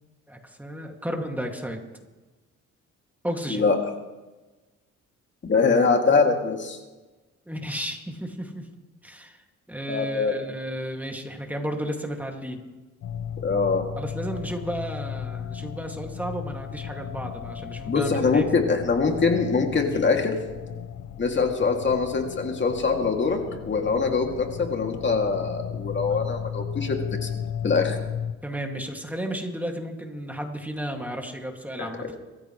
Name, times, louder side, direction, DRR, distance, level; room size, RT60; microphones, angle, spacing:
voice 1, 0.3-1.8 3.2-3.6 7.5-8.7 9.0-9.4 9.7-12.6 14.0-18.4 28.4-32.0, equal, 5° right, 2 dB, 2.4 m, -33 dB
voice 2, 5.4-6.8 9.9-10.3 13.4-13.8 17.8-20.4 21.2-23.4 23.6-27.0 27.2-27.3 27.6-28.0 31.8-32.1, left 4 dB, 40° left, 2 dB, 2.7 m, -23 dB
sound 1, 13.0-28.3, left 8 dB, 85° left, 0.9 m, -35 dB
24.5 x 14.5 x 3.3 m, 1.2 s
cardioid pair, 90°, 30 cm